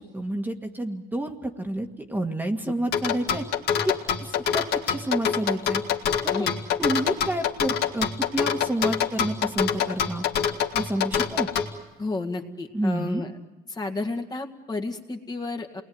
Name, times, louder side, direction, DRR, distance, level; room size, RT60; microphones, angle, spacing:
voice 1, 0.0-3.4 3.8-3.9 4.2-5.8 6.2-6.5 6.8-10.2 10.7-11.5 12.7-13.3, right 1 dB, 10° right, 3 dB, 1.8 m, -29 dB
sound 1, 2.9-11.7, left 8 dB, 70° left, 2.3 m, -25 dB
voice 2, 12.0-13.3 13.7-15.8, left 3 dB, 25° left, 3 dB, 1.9 m, -31 dB
28.5 x 20.0 x 9.5 m, 1.1 s
cardioid pair, 110°, 17 cm